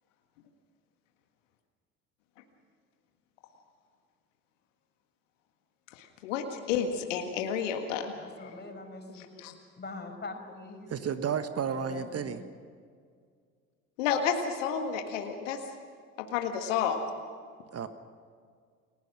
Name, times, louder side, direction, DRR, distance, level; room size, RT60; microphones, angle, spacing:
voice 1, 6.0-8.1 9.2-9.5 14.0-15.6 16.2-17.0, left 7 dB, 70° left, 5 dB, 1.8 m, -31 dB
voice 2, 8.2-9.3 9.8-10.9 11.8-12.4, left 3 dB, 25° left, 4 dB, 5.5 m, -43 dB
voice 3, 10.9-12.4 17.7-17.9, right 7 dB, 40° right, 10 dB, 1.4 m, -32 dB
29.5 x 20.5 x 6.3 m, 2.1 s
figure-of-eight pair, 50°, 39 cm